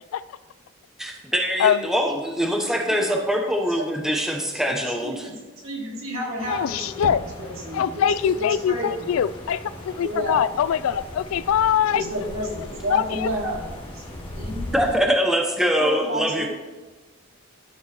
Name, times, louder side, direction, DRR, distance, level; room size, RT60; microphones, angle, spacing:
voice 1, 1.0-5.3 14.7-16.5, equal, ahead, 2 dB, 0.9 m, -23 dB
voice 2, 5.0-5.3 5.6-9.1 10.0-10.4 11.9-14.0 14.3-14.9 15.8-16.5, equal, 85° right, -4 dB, 3.0 m, -31 dB
sound 1, 6.4-15.0, left 1 dB, 25° left, 1.7 m, -38 dB
voice 3, 6.5-7.2 7.7-12.0 12.9-13.3, left 8 dB, 80° left, 17 dB, 0.3 m, -23 dB
Knock, 7.0-7.9, right 3 dB, 70° right, 0.7 m, -36 dB
12.5 x 4.5 x 4.3 m, 1.2 s
head